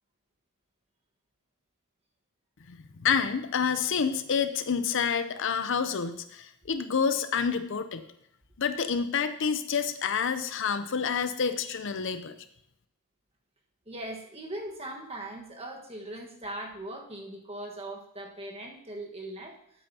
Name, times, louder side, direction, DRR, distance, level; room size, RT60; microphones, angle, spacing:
voice 1, 2.7-8.0 8.6-12.3, left 6 dB, 55° left, 11 dB, 0.6 m, -28 dB
voice 2, 13.9-19.6, right 1 dB, 25° right, 1 dB, 1.4 m, -40 dB
13.5 x 8.7 x 2.8 m, 0.73 s
head